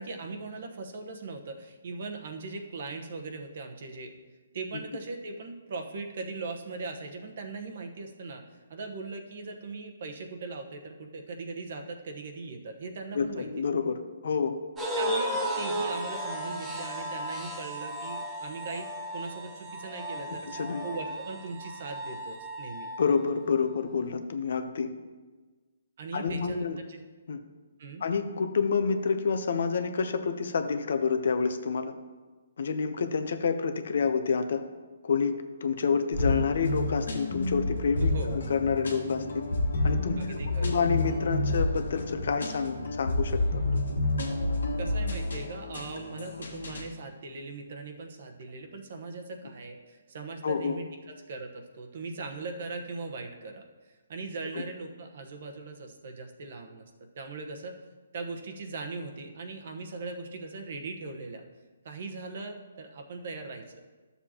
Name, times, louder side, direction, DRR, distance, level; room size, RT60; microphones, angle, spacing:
voice 1, 0.0-4.1 4.5-8.4 8.7-13.5 14.9-20.5 20.8-22.9 26.0-27.0 27.8-28.0 38.0-38.4 40.2-40.7 44.8-53.6 54.1-56.9 57.1-57.8 58.1-61.4 61.8-63.6, right 3 dB, 55° right, 4 dB, 1.1 m, -39 dB
voice 2, 13.1-14.6 20.5-20.8 23.0-24.9 26.1-26.8 27.3-27.4 28.0-31.9 32.6-34.6 35.0-39.5 39.8-44.1 50.4-50.8, left 5 dB, 65° left, 9 dB, 0.7 m, -28 dB
sound 1, 14.8-23.2, right 1 dB, 10° right, 1.2 m, -35 dB
sound 2, 36.1-46.8, left 2 dB, 90° left, 1.6 m, -30 dB
12.5 x 7.0 x 2.9 m, 1.3 s
hypercardioid pair, 155°, 0 cm